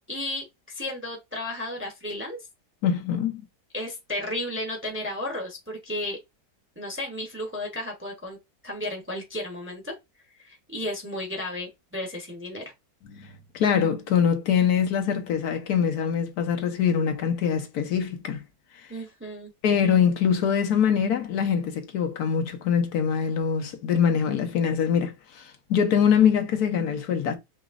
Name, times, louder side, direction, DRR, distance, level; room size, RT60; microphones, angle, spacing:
voice 1, 0.1-2.5 3.7-6.2 6.8-8.4 8.6-9.9 10.4-12.7 18.9-19.5, left 1 dB, 10° right, 0.7 m, -33 dB
voice 2, 2.8-3.4 13.1-18.4 19.6-27.4, left 7 dB, 75° left, 1.3 m, -23 dB
5.0 x 3.0 x 2.5 m
omnidirectional pair, 1.7 m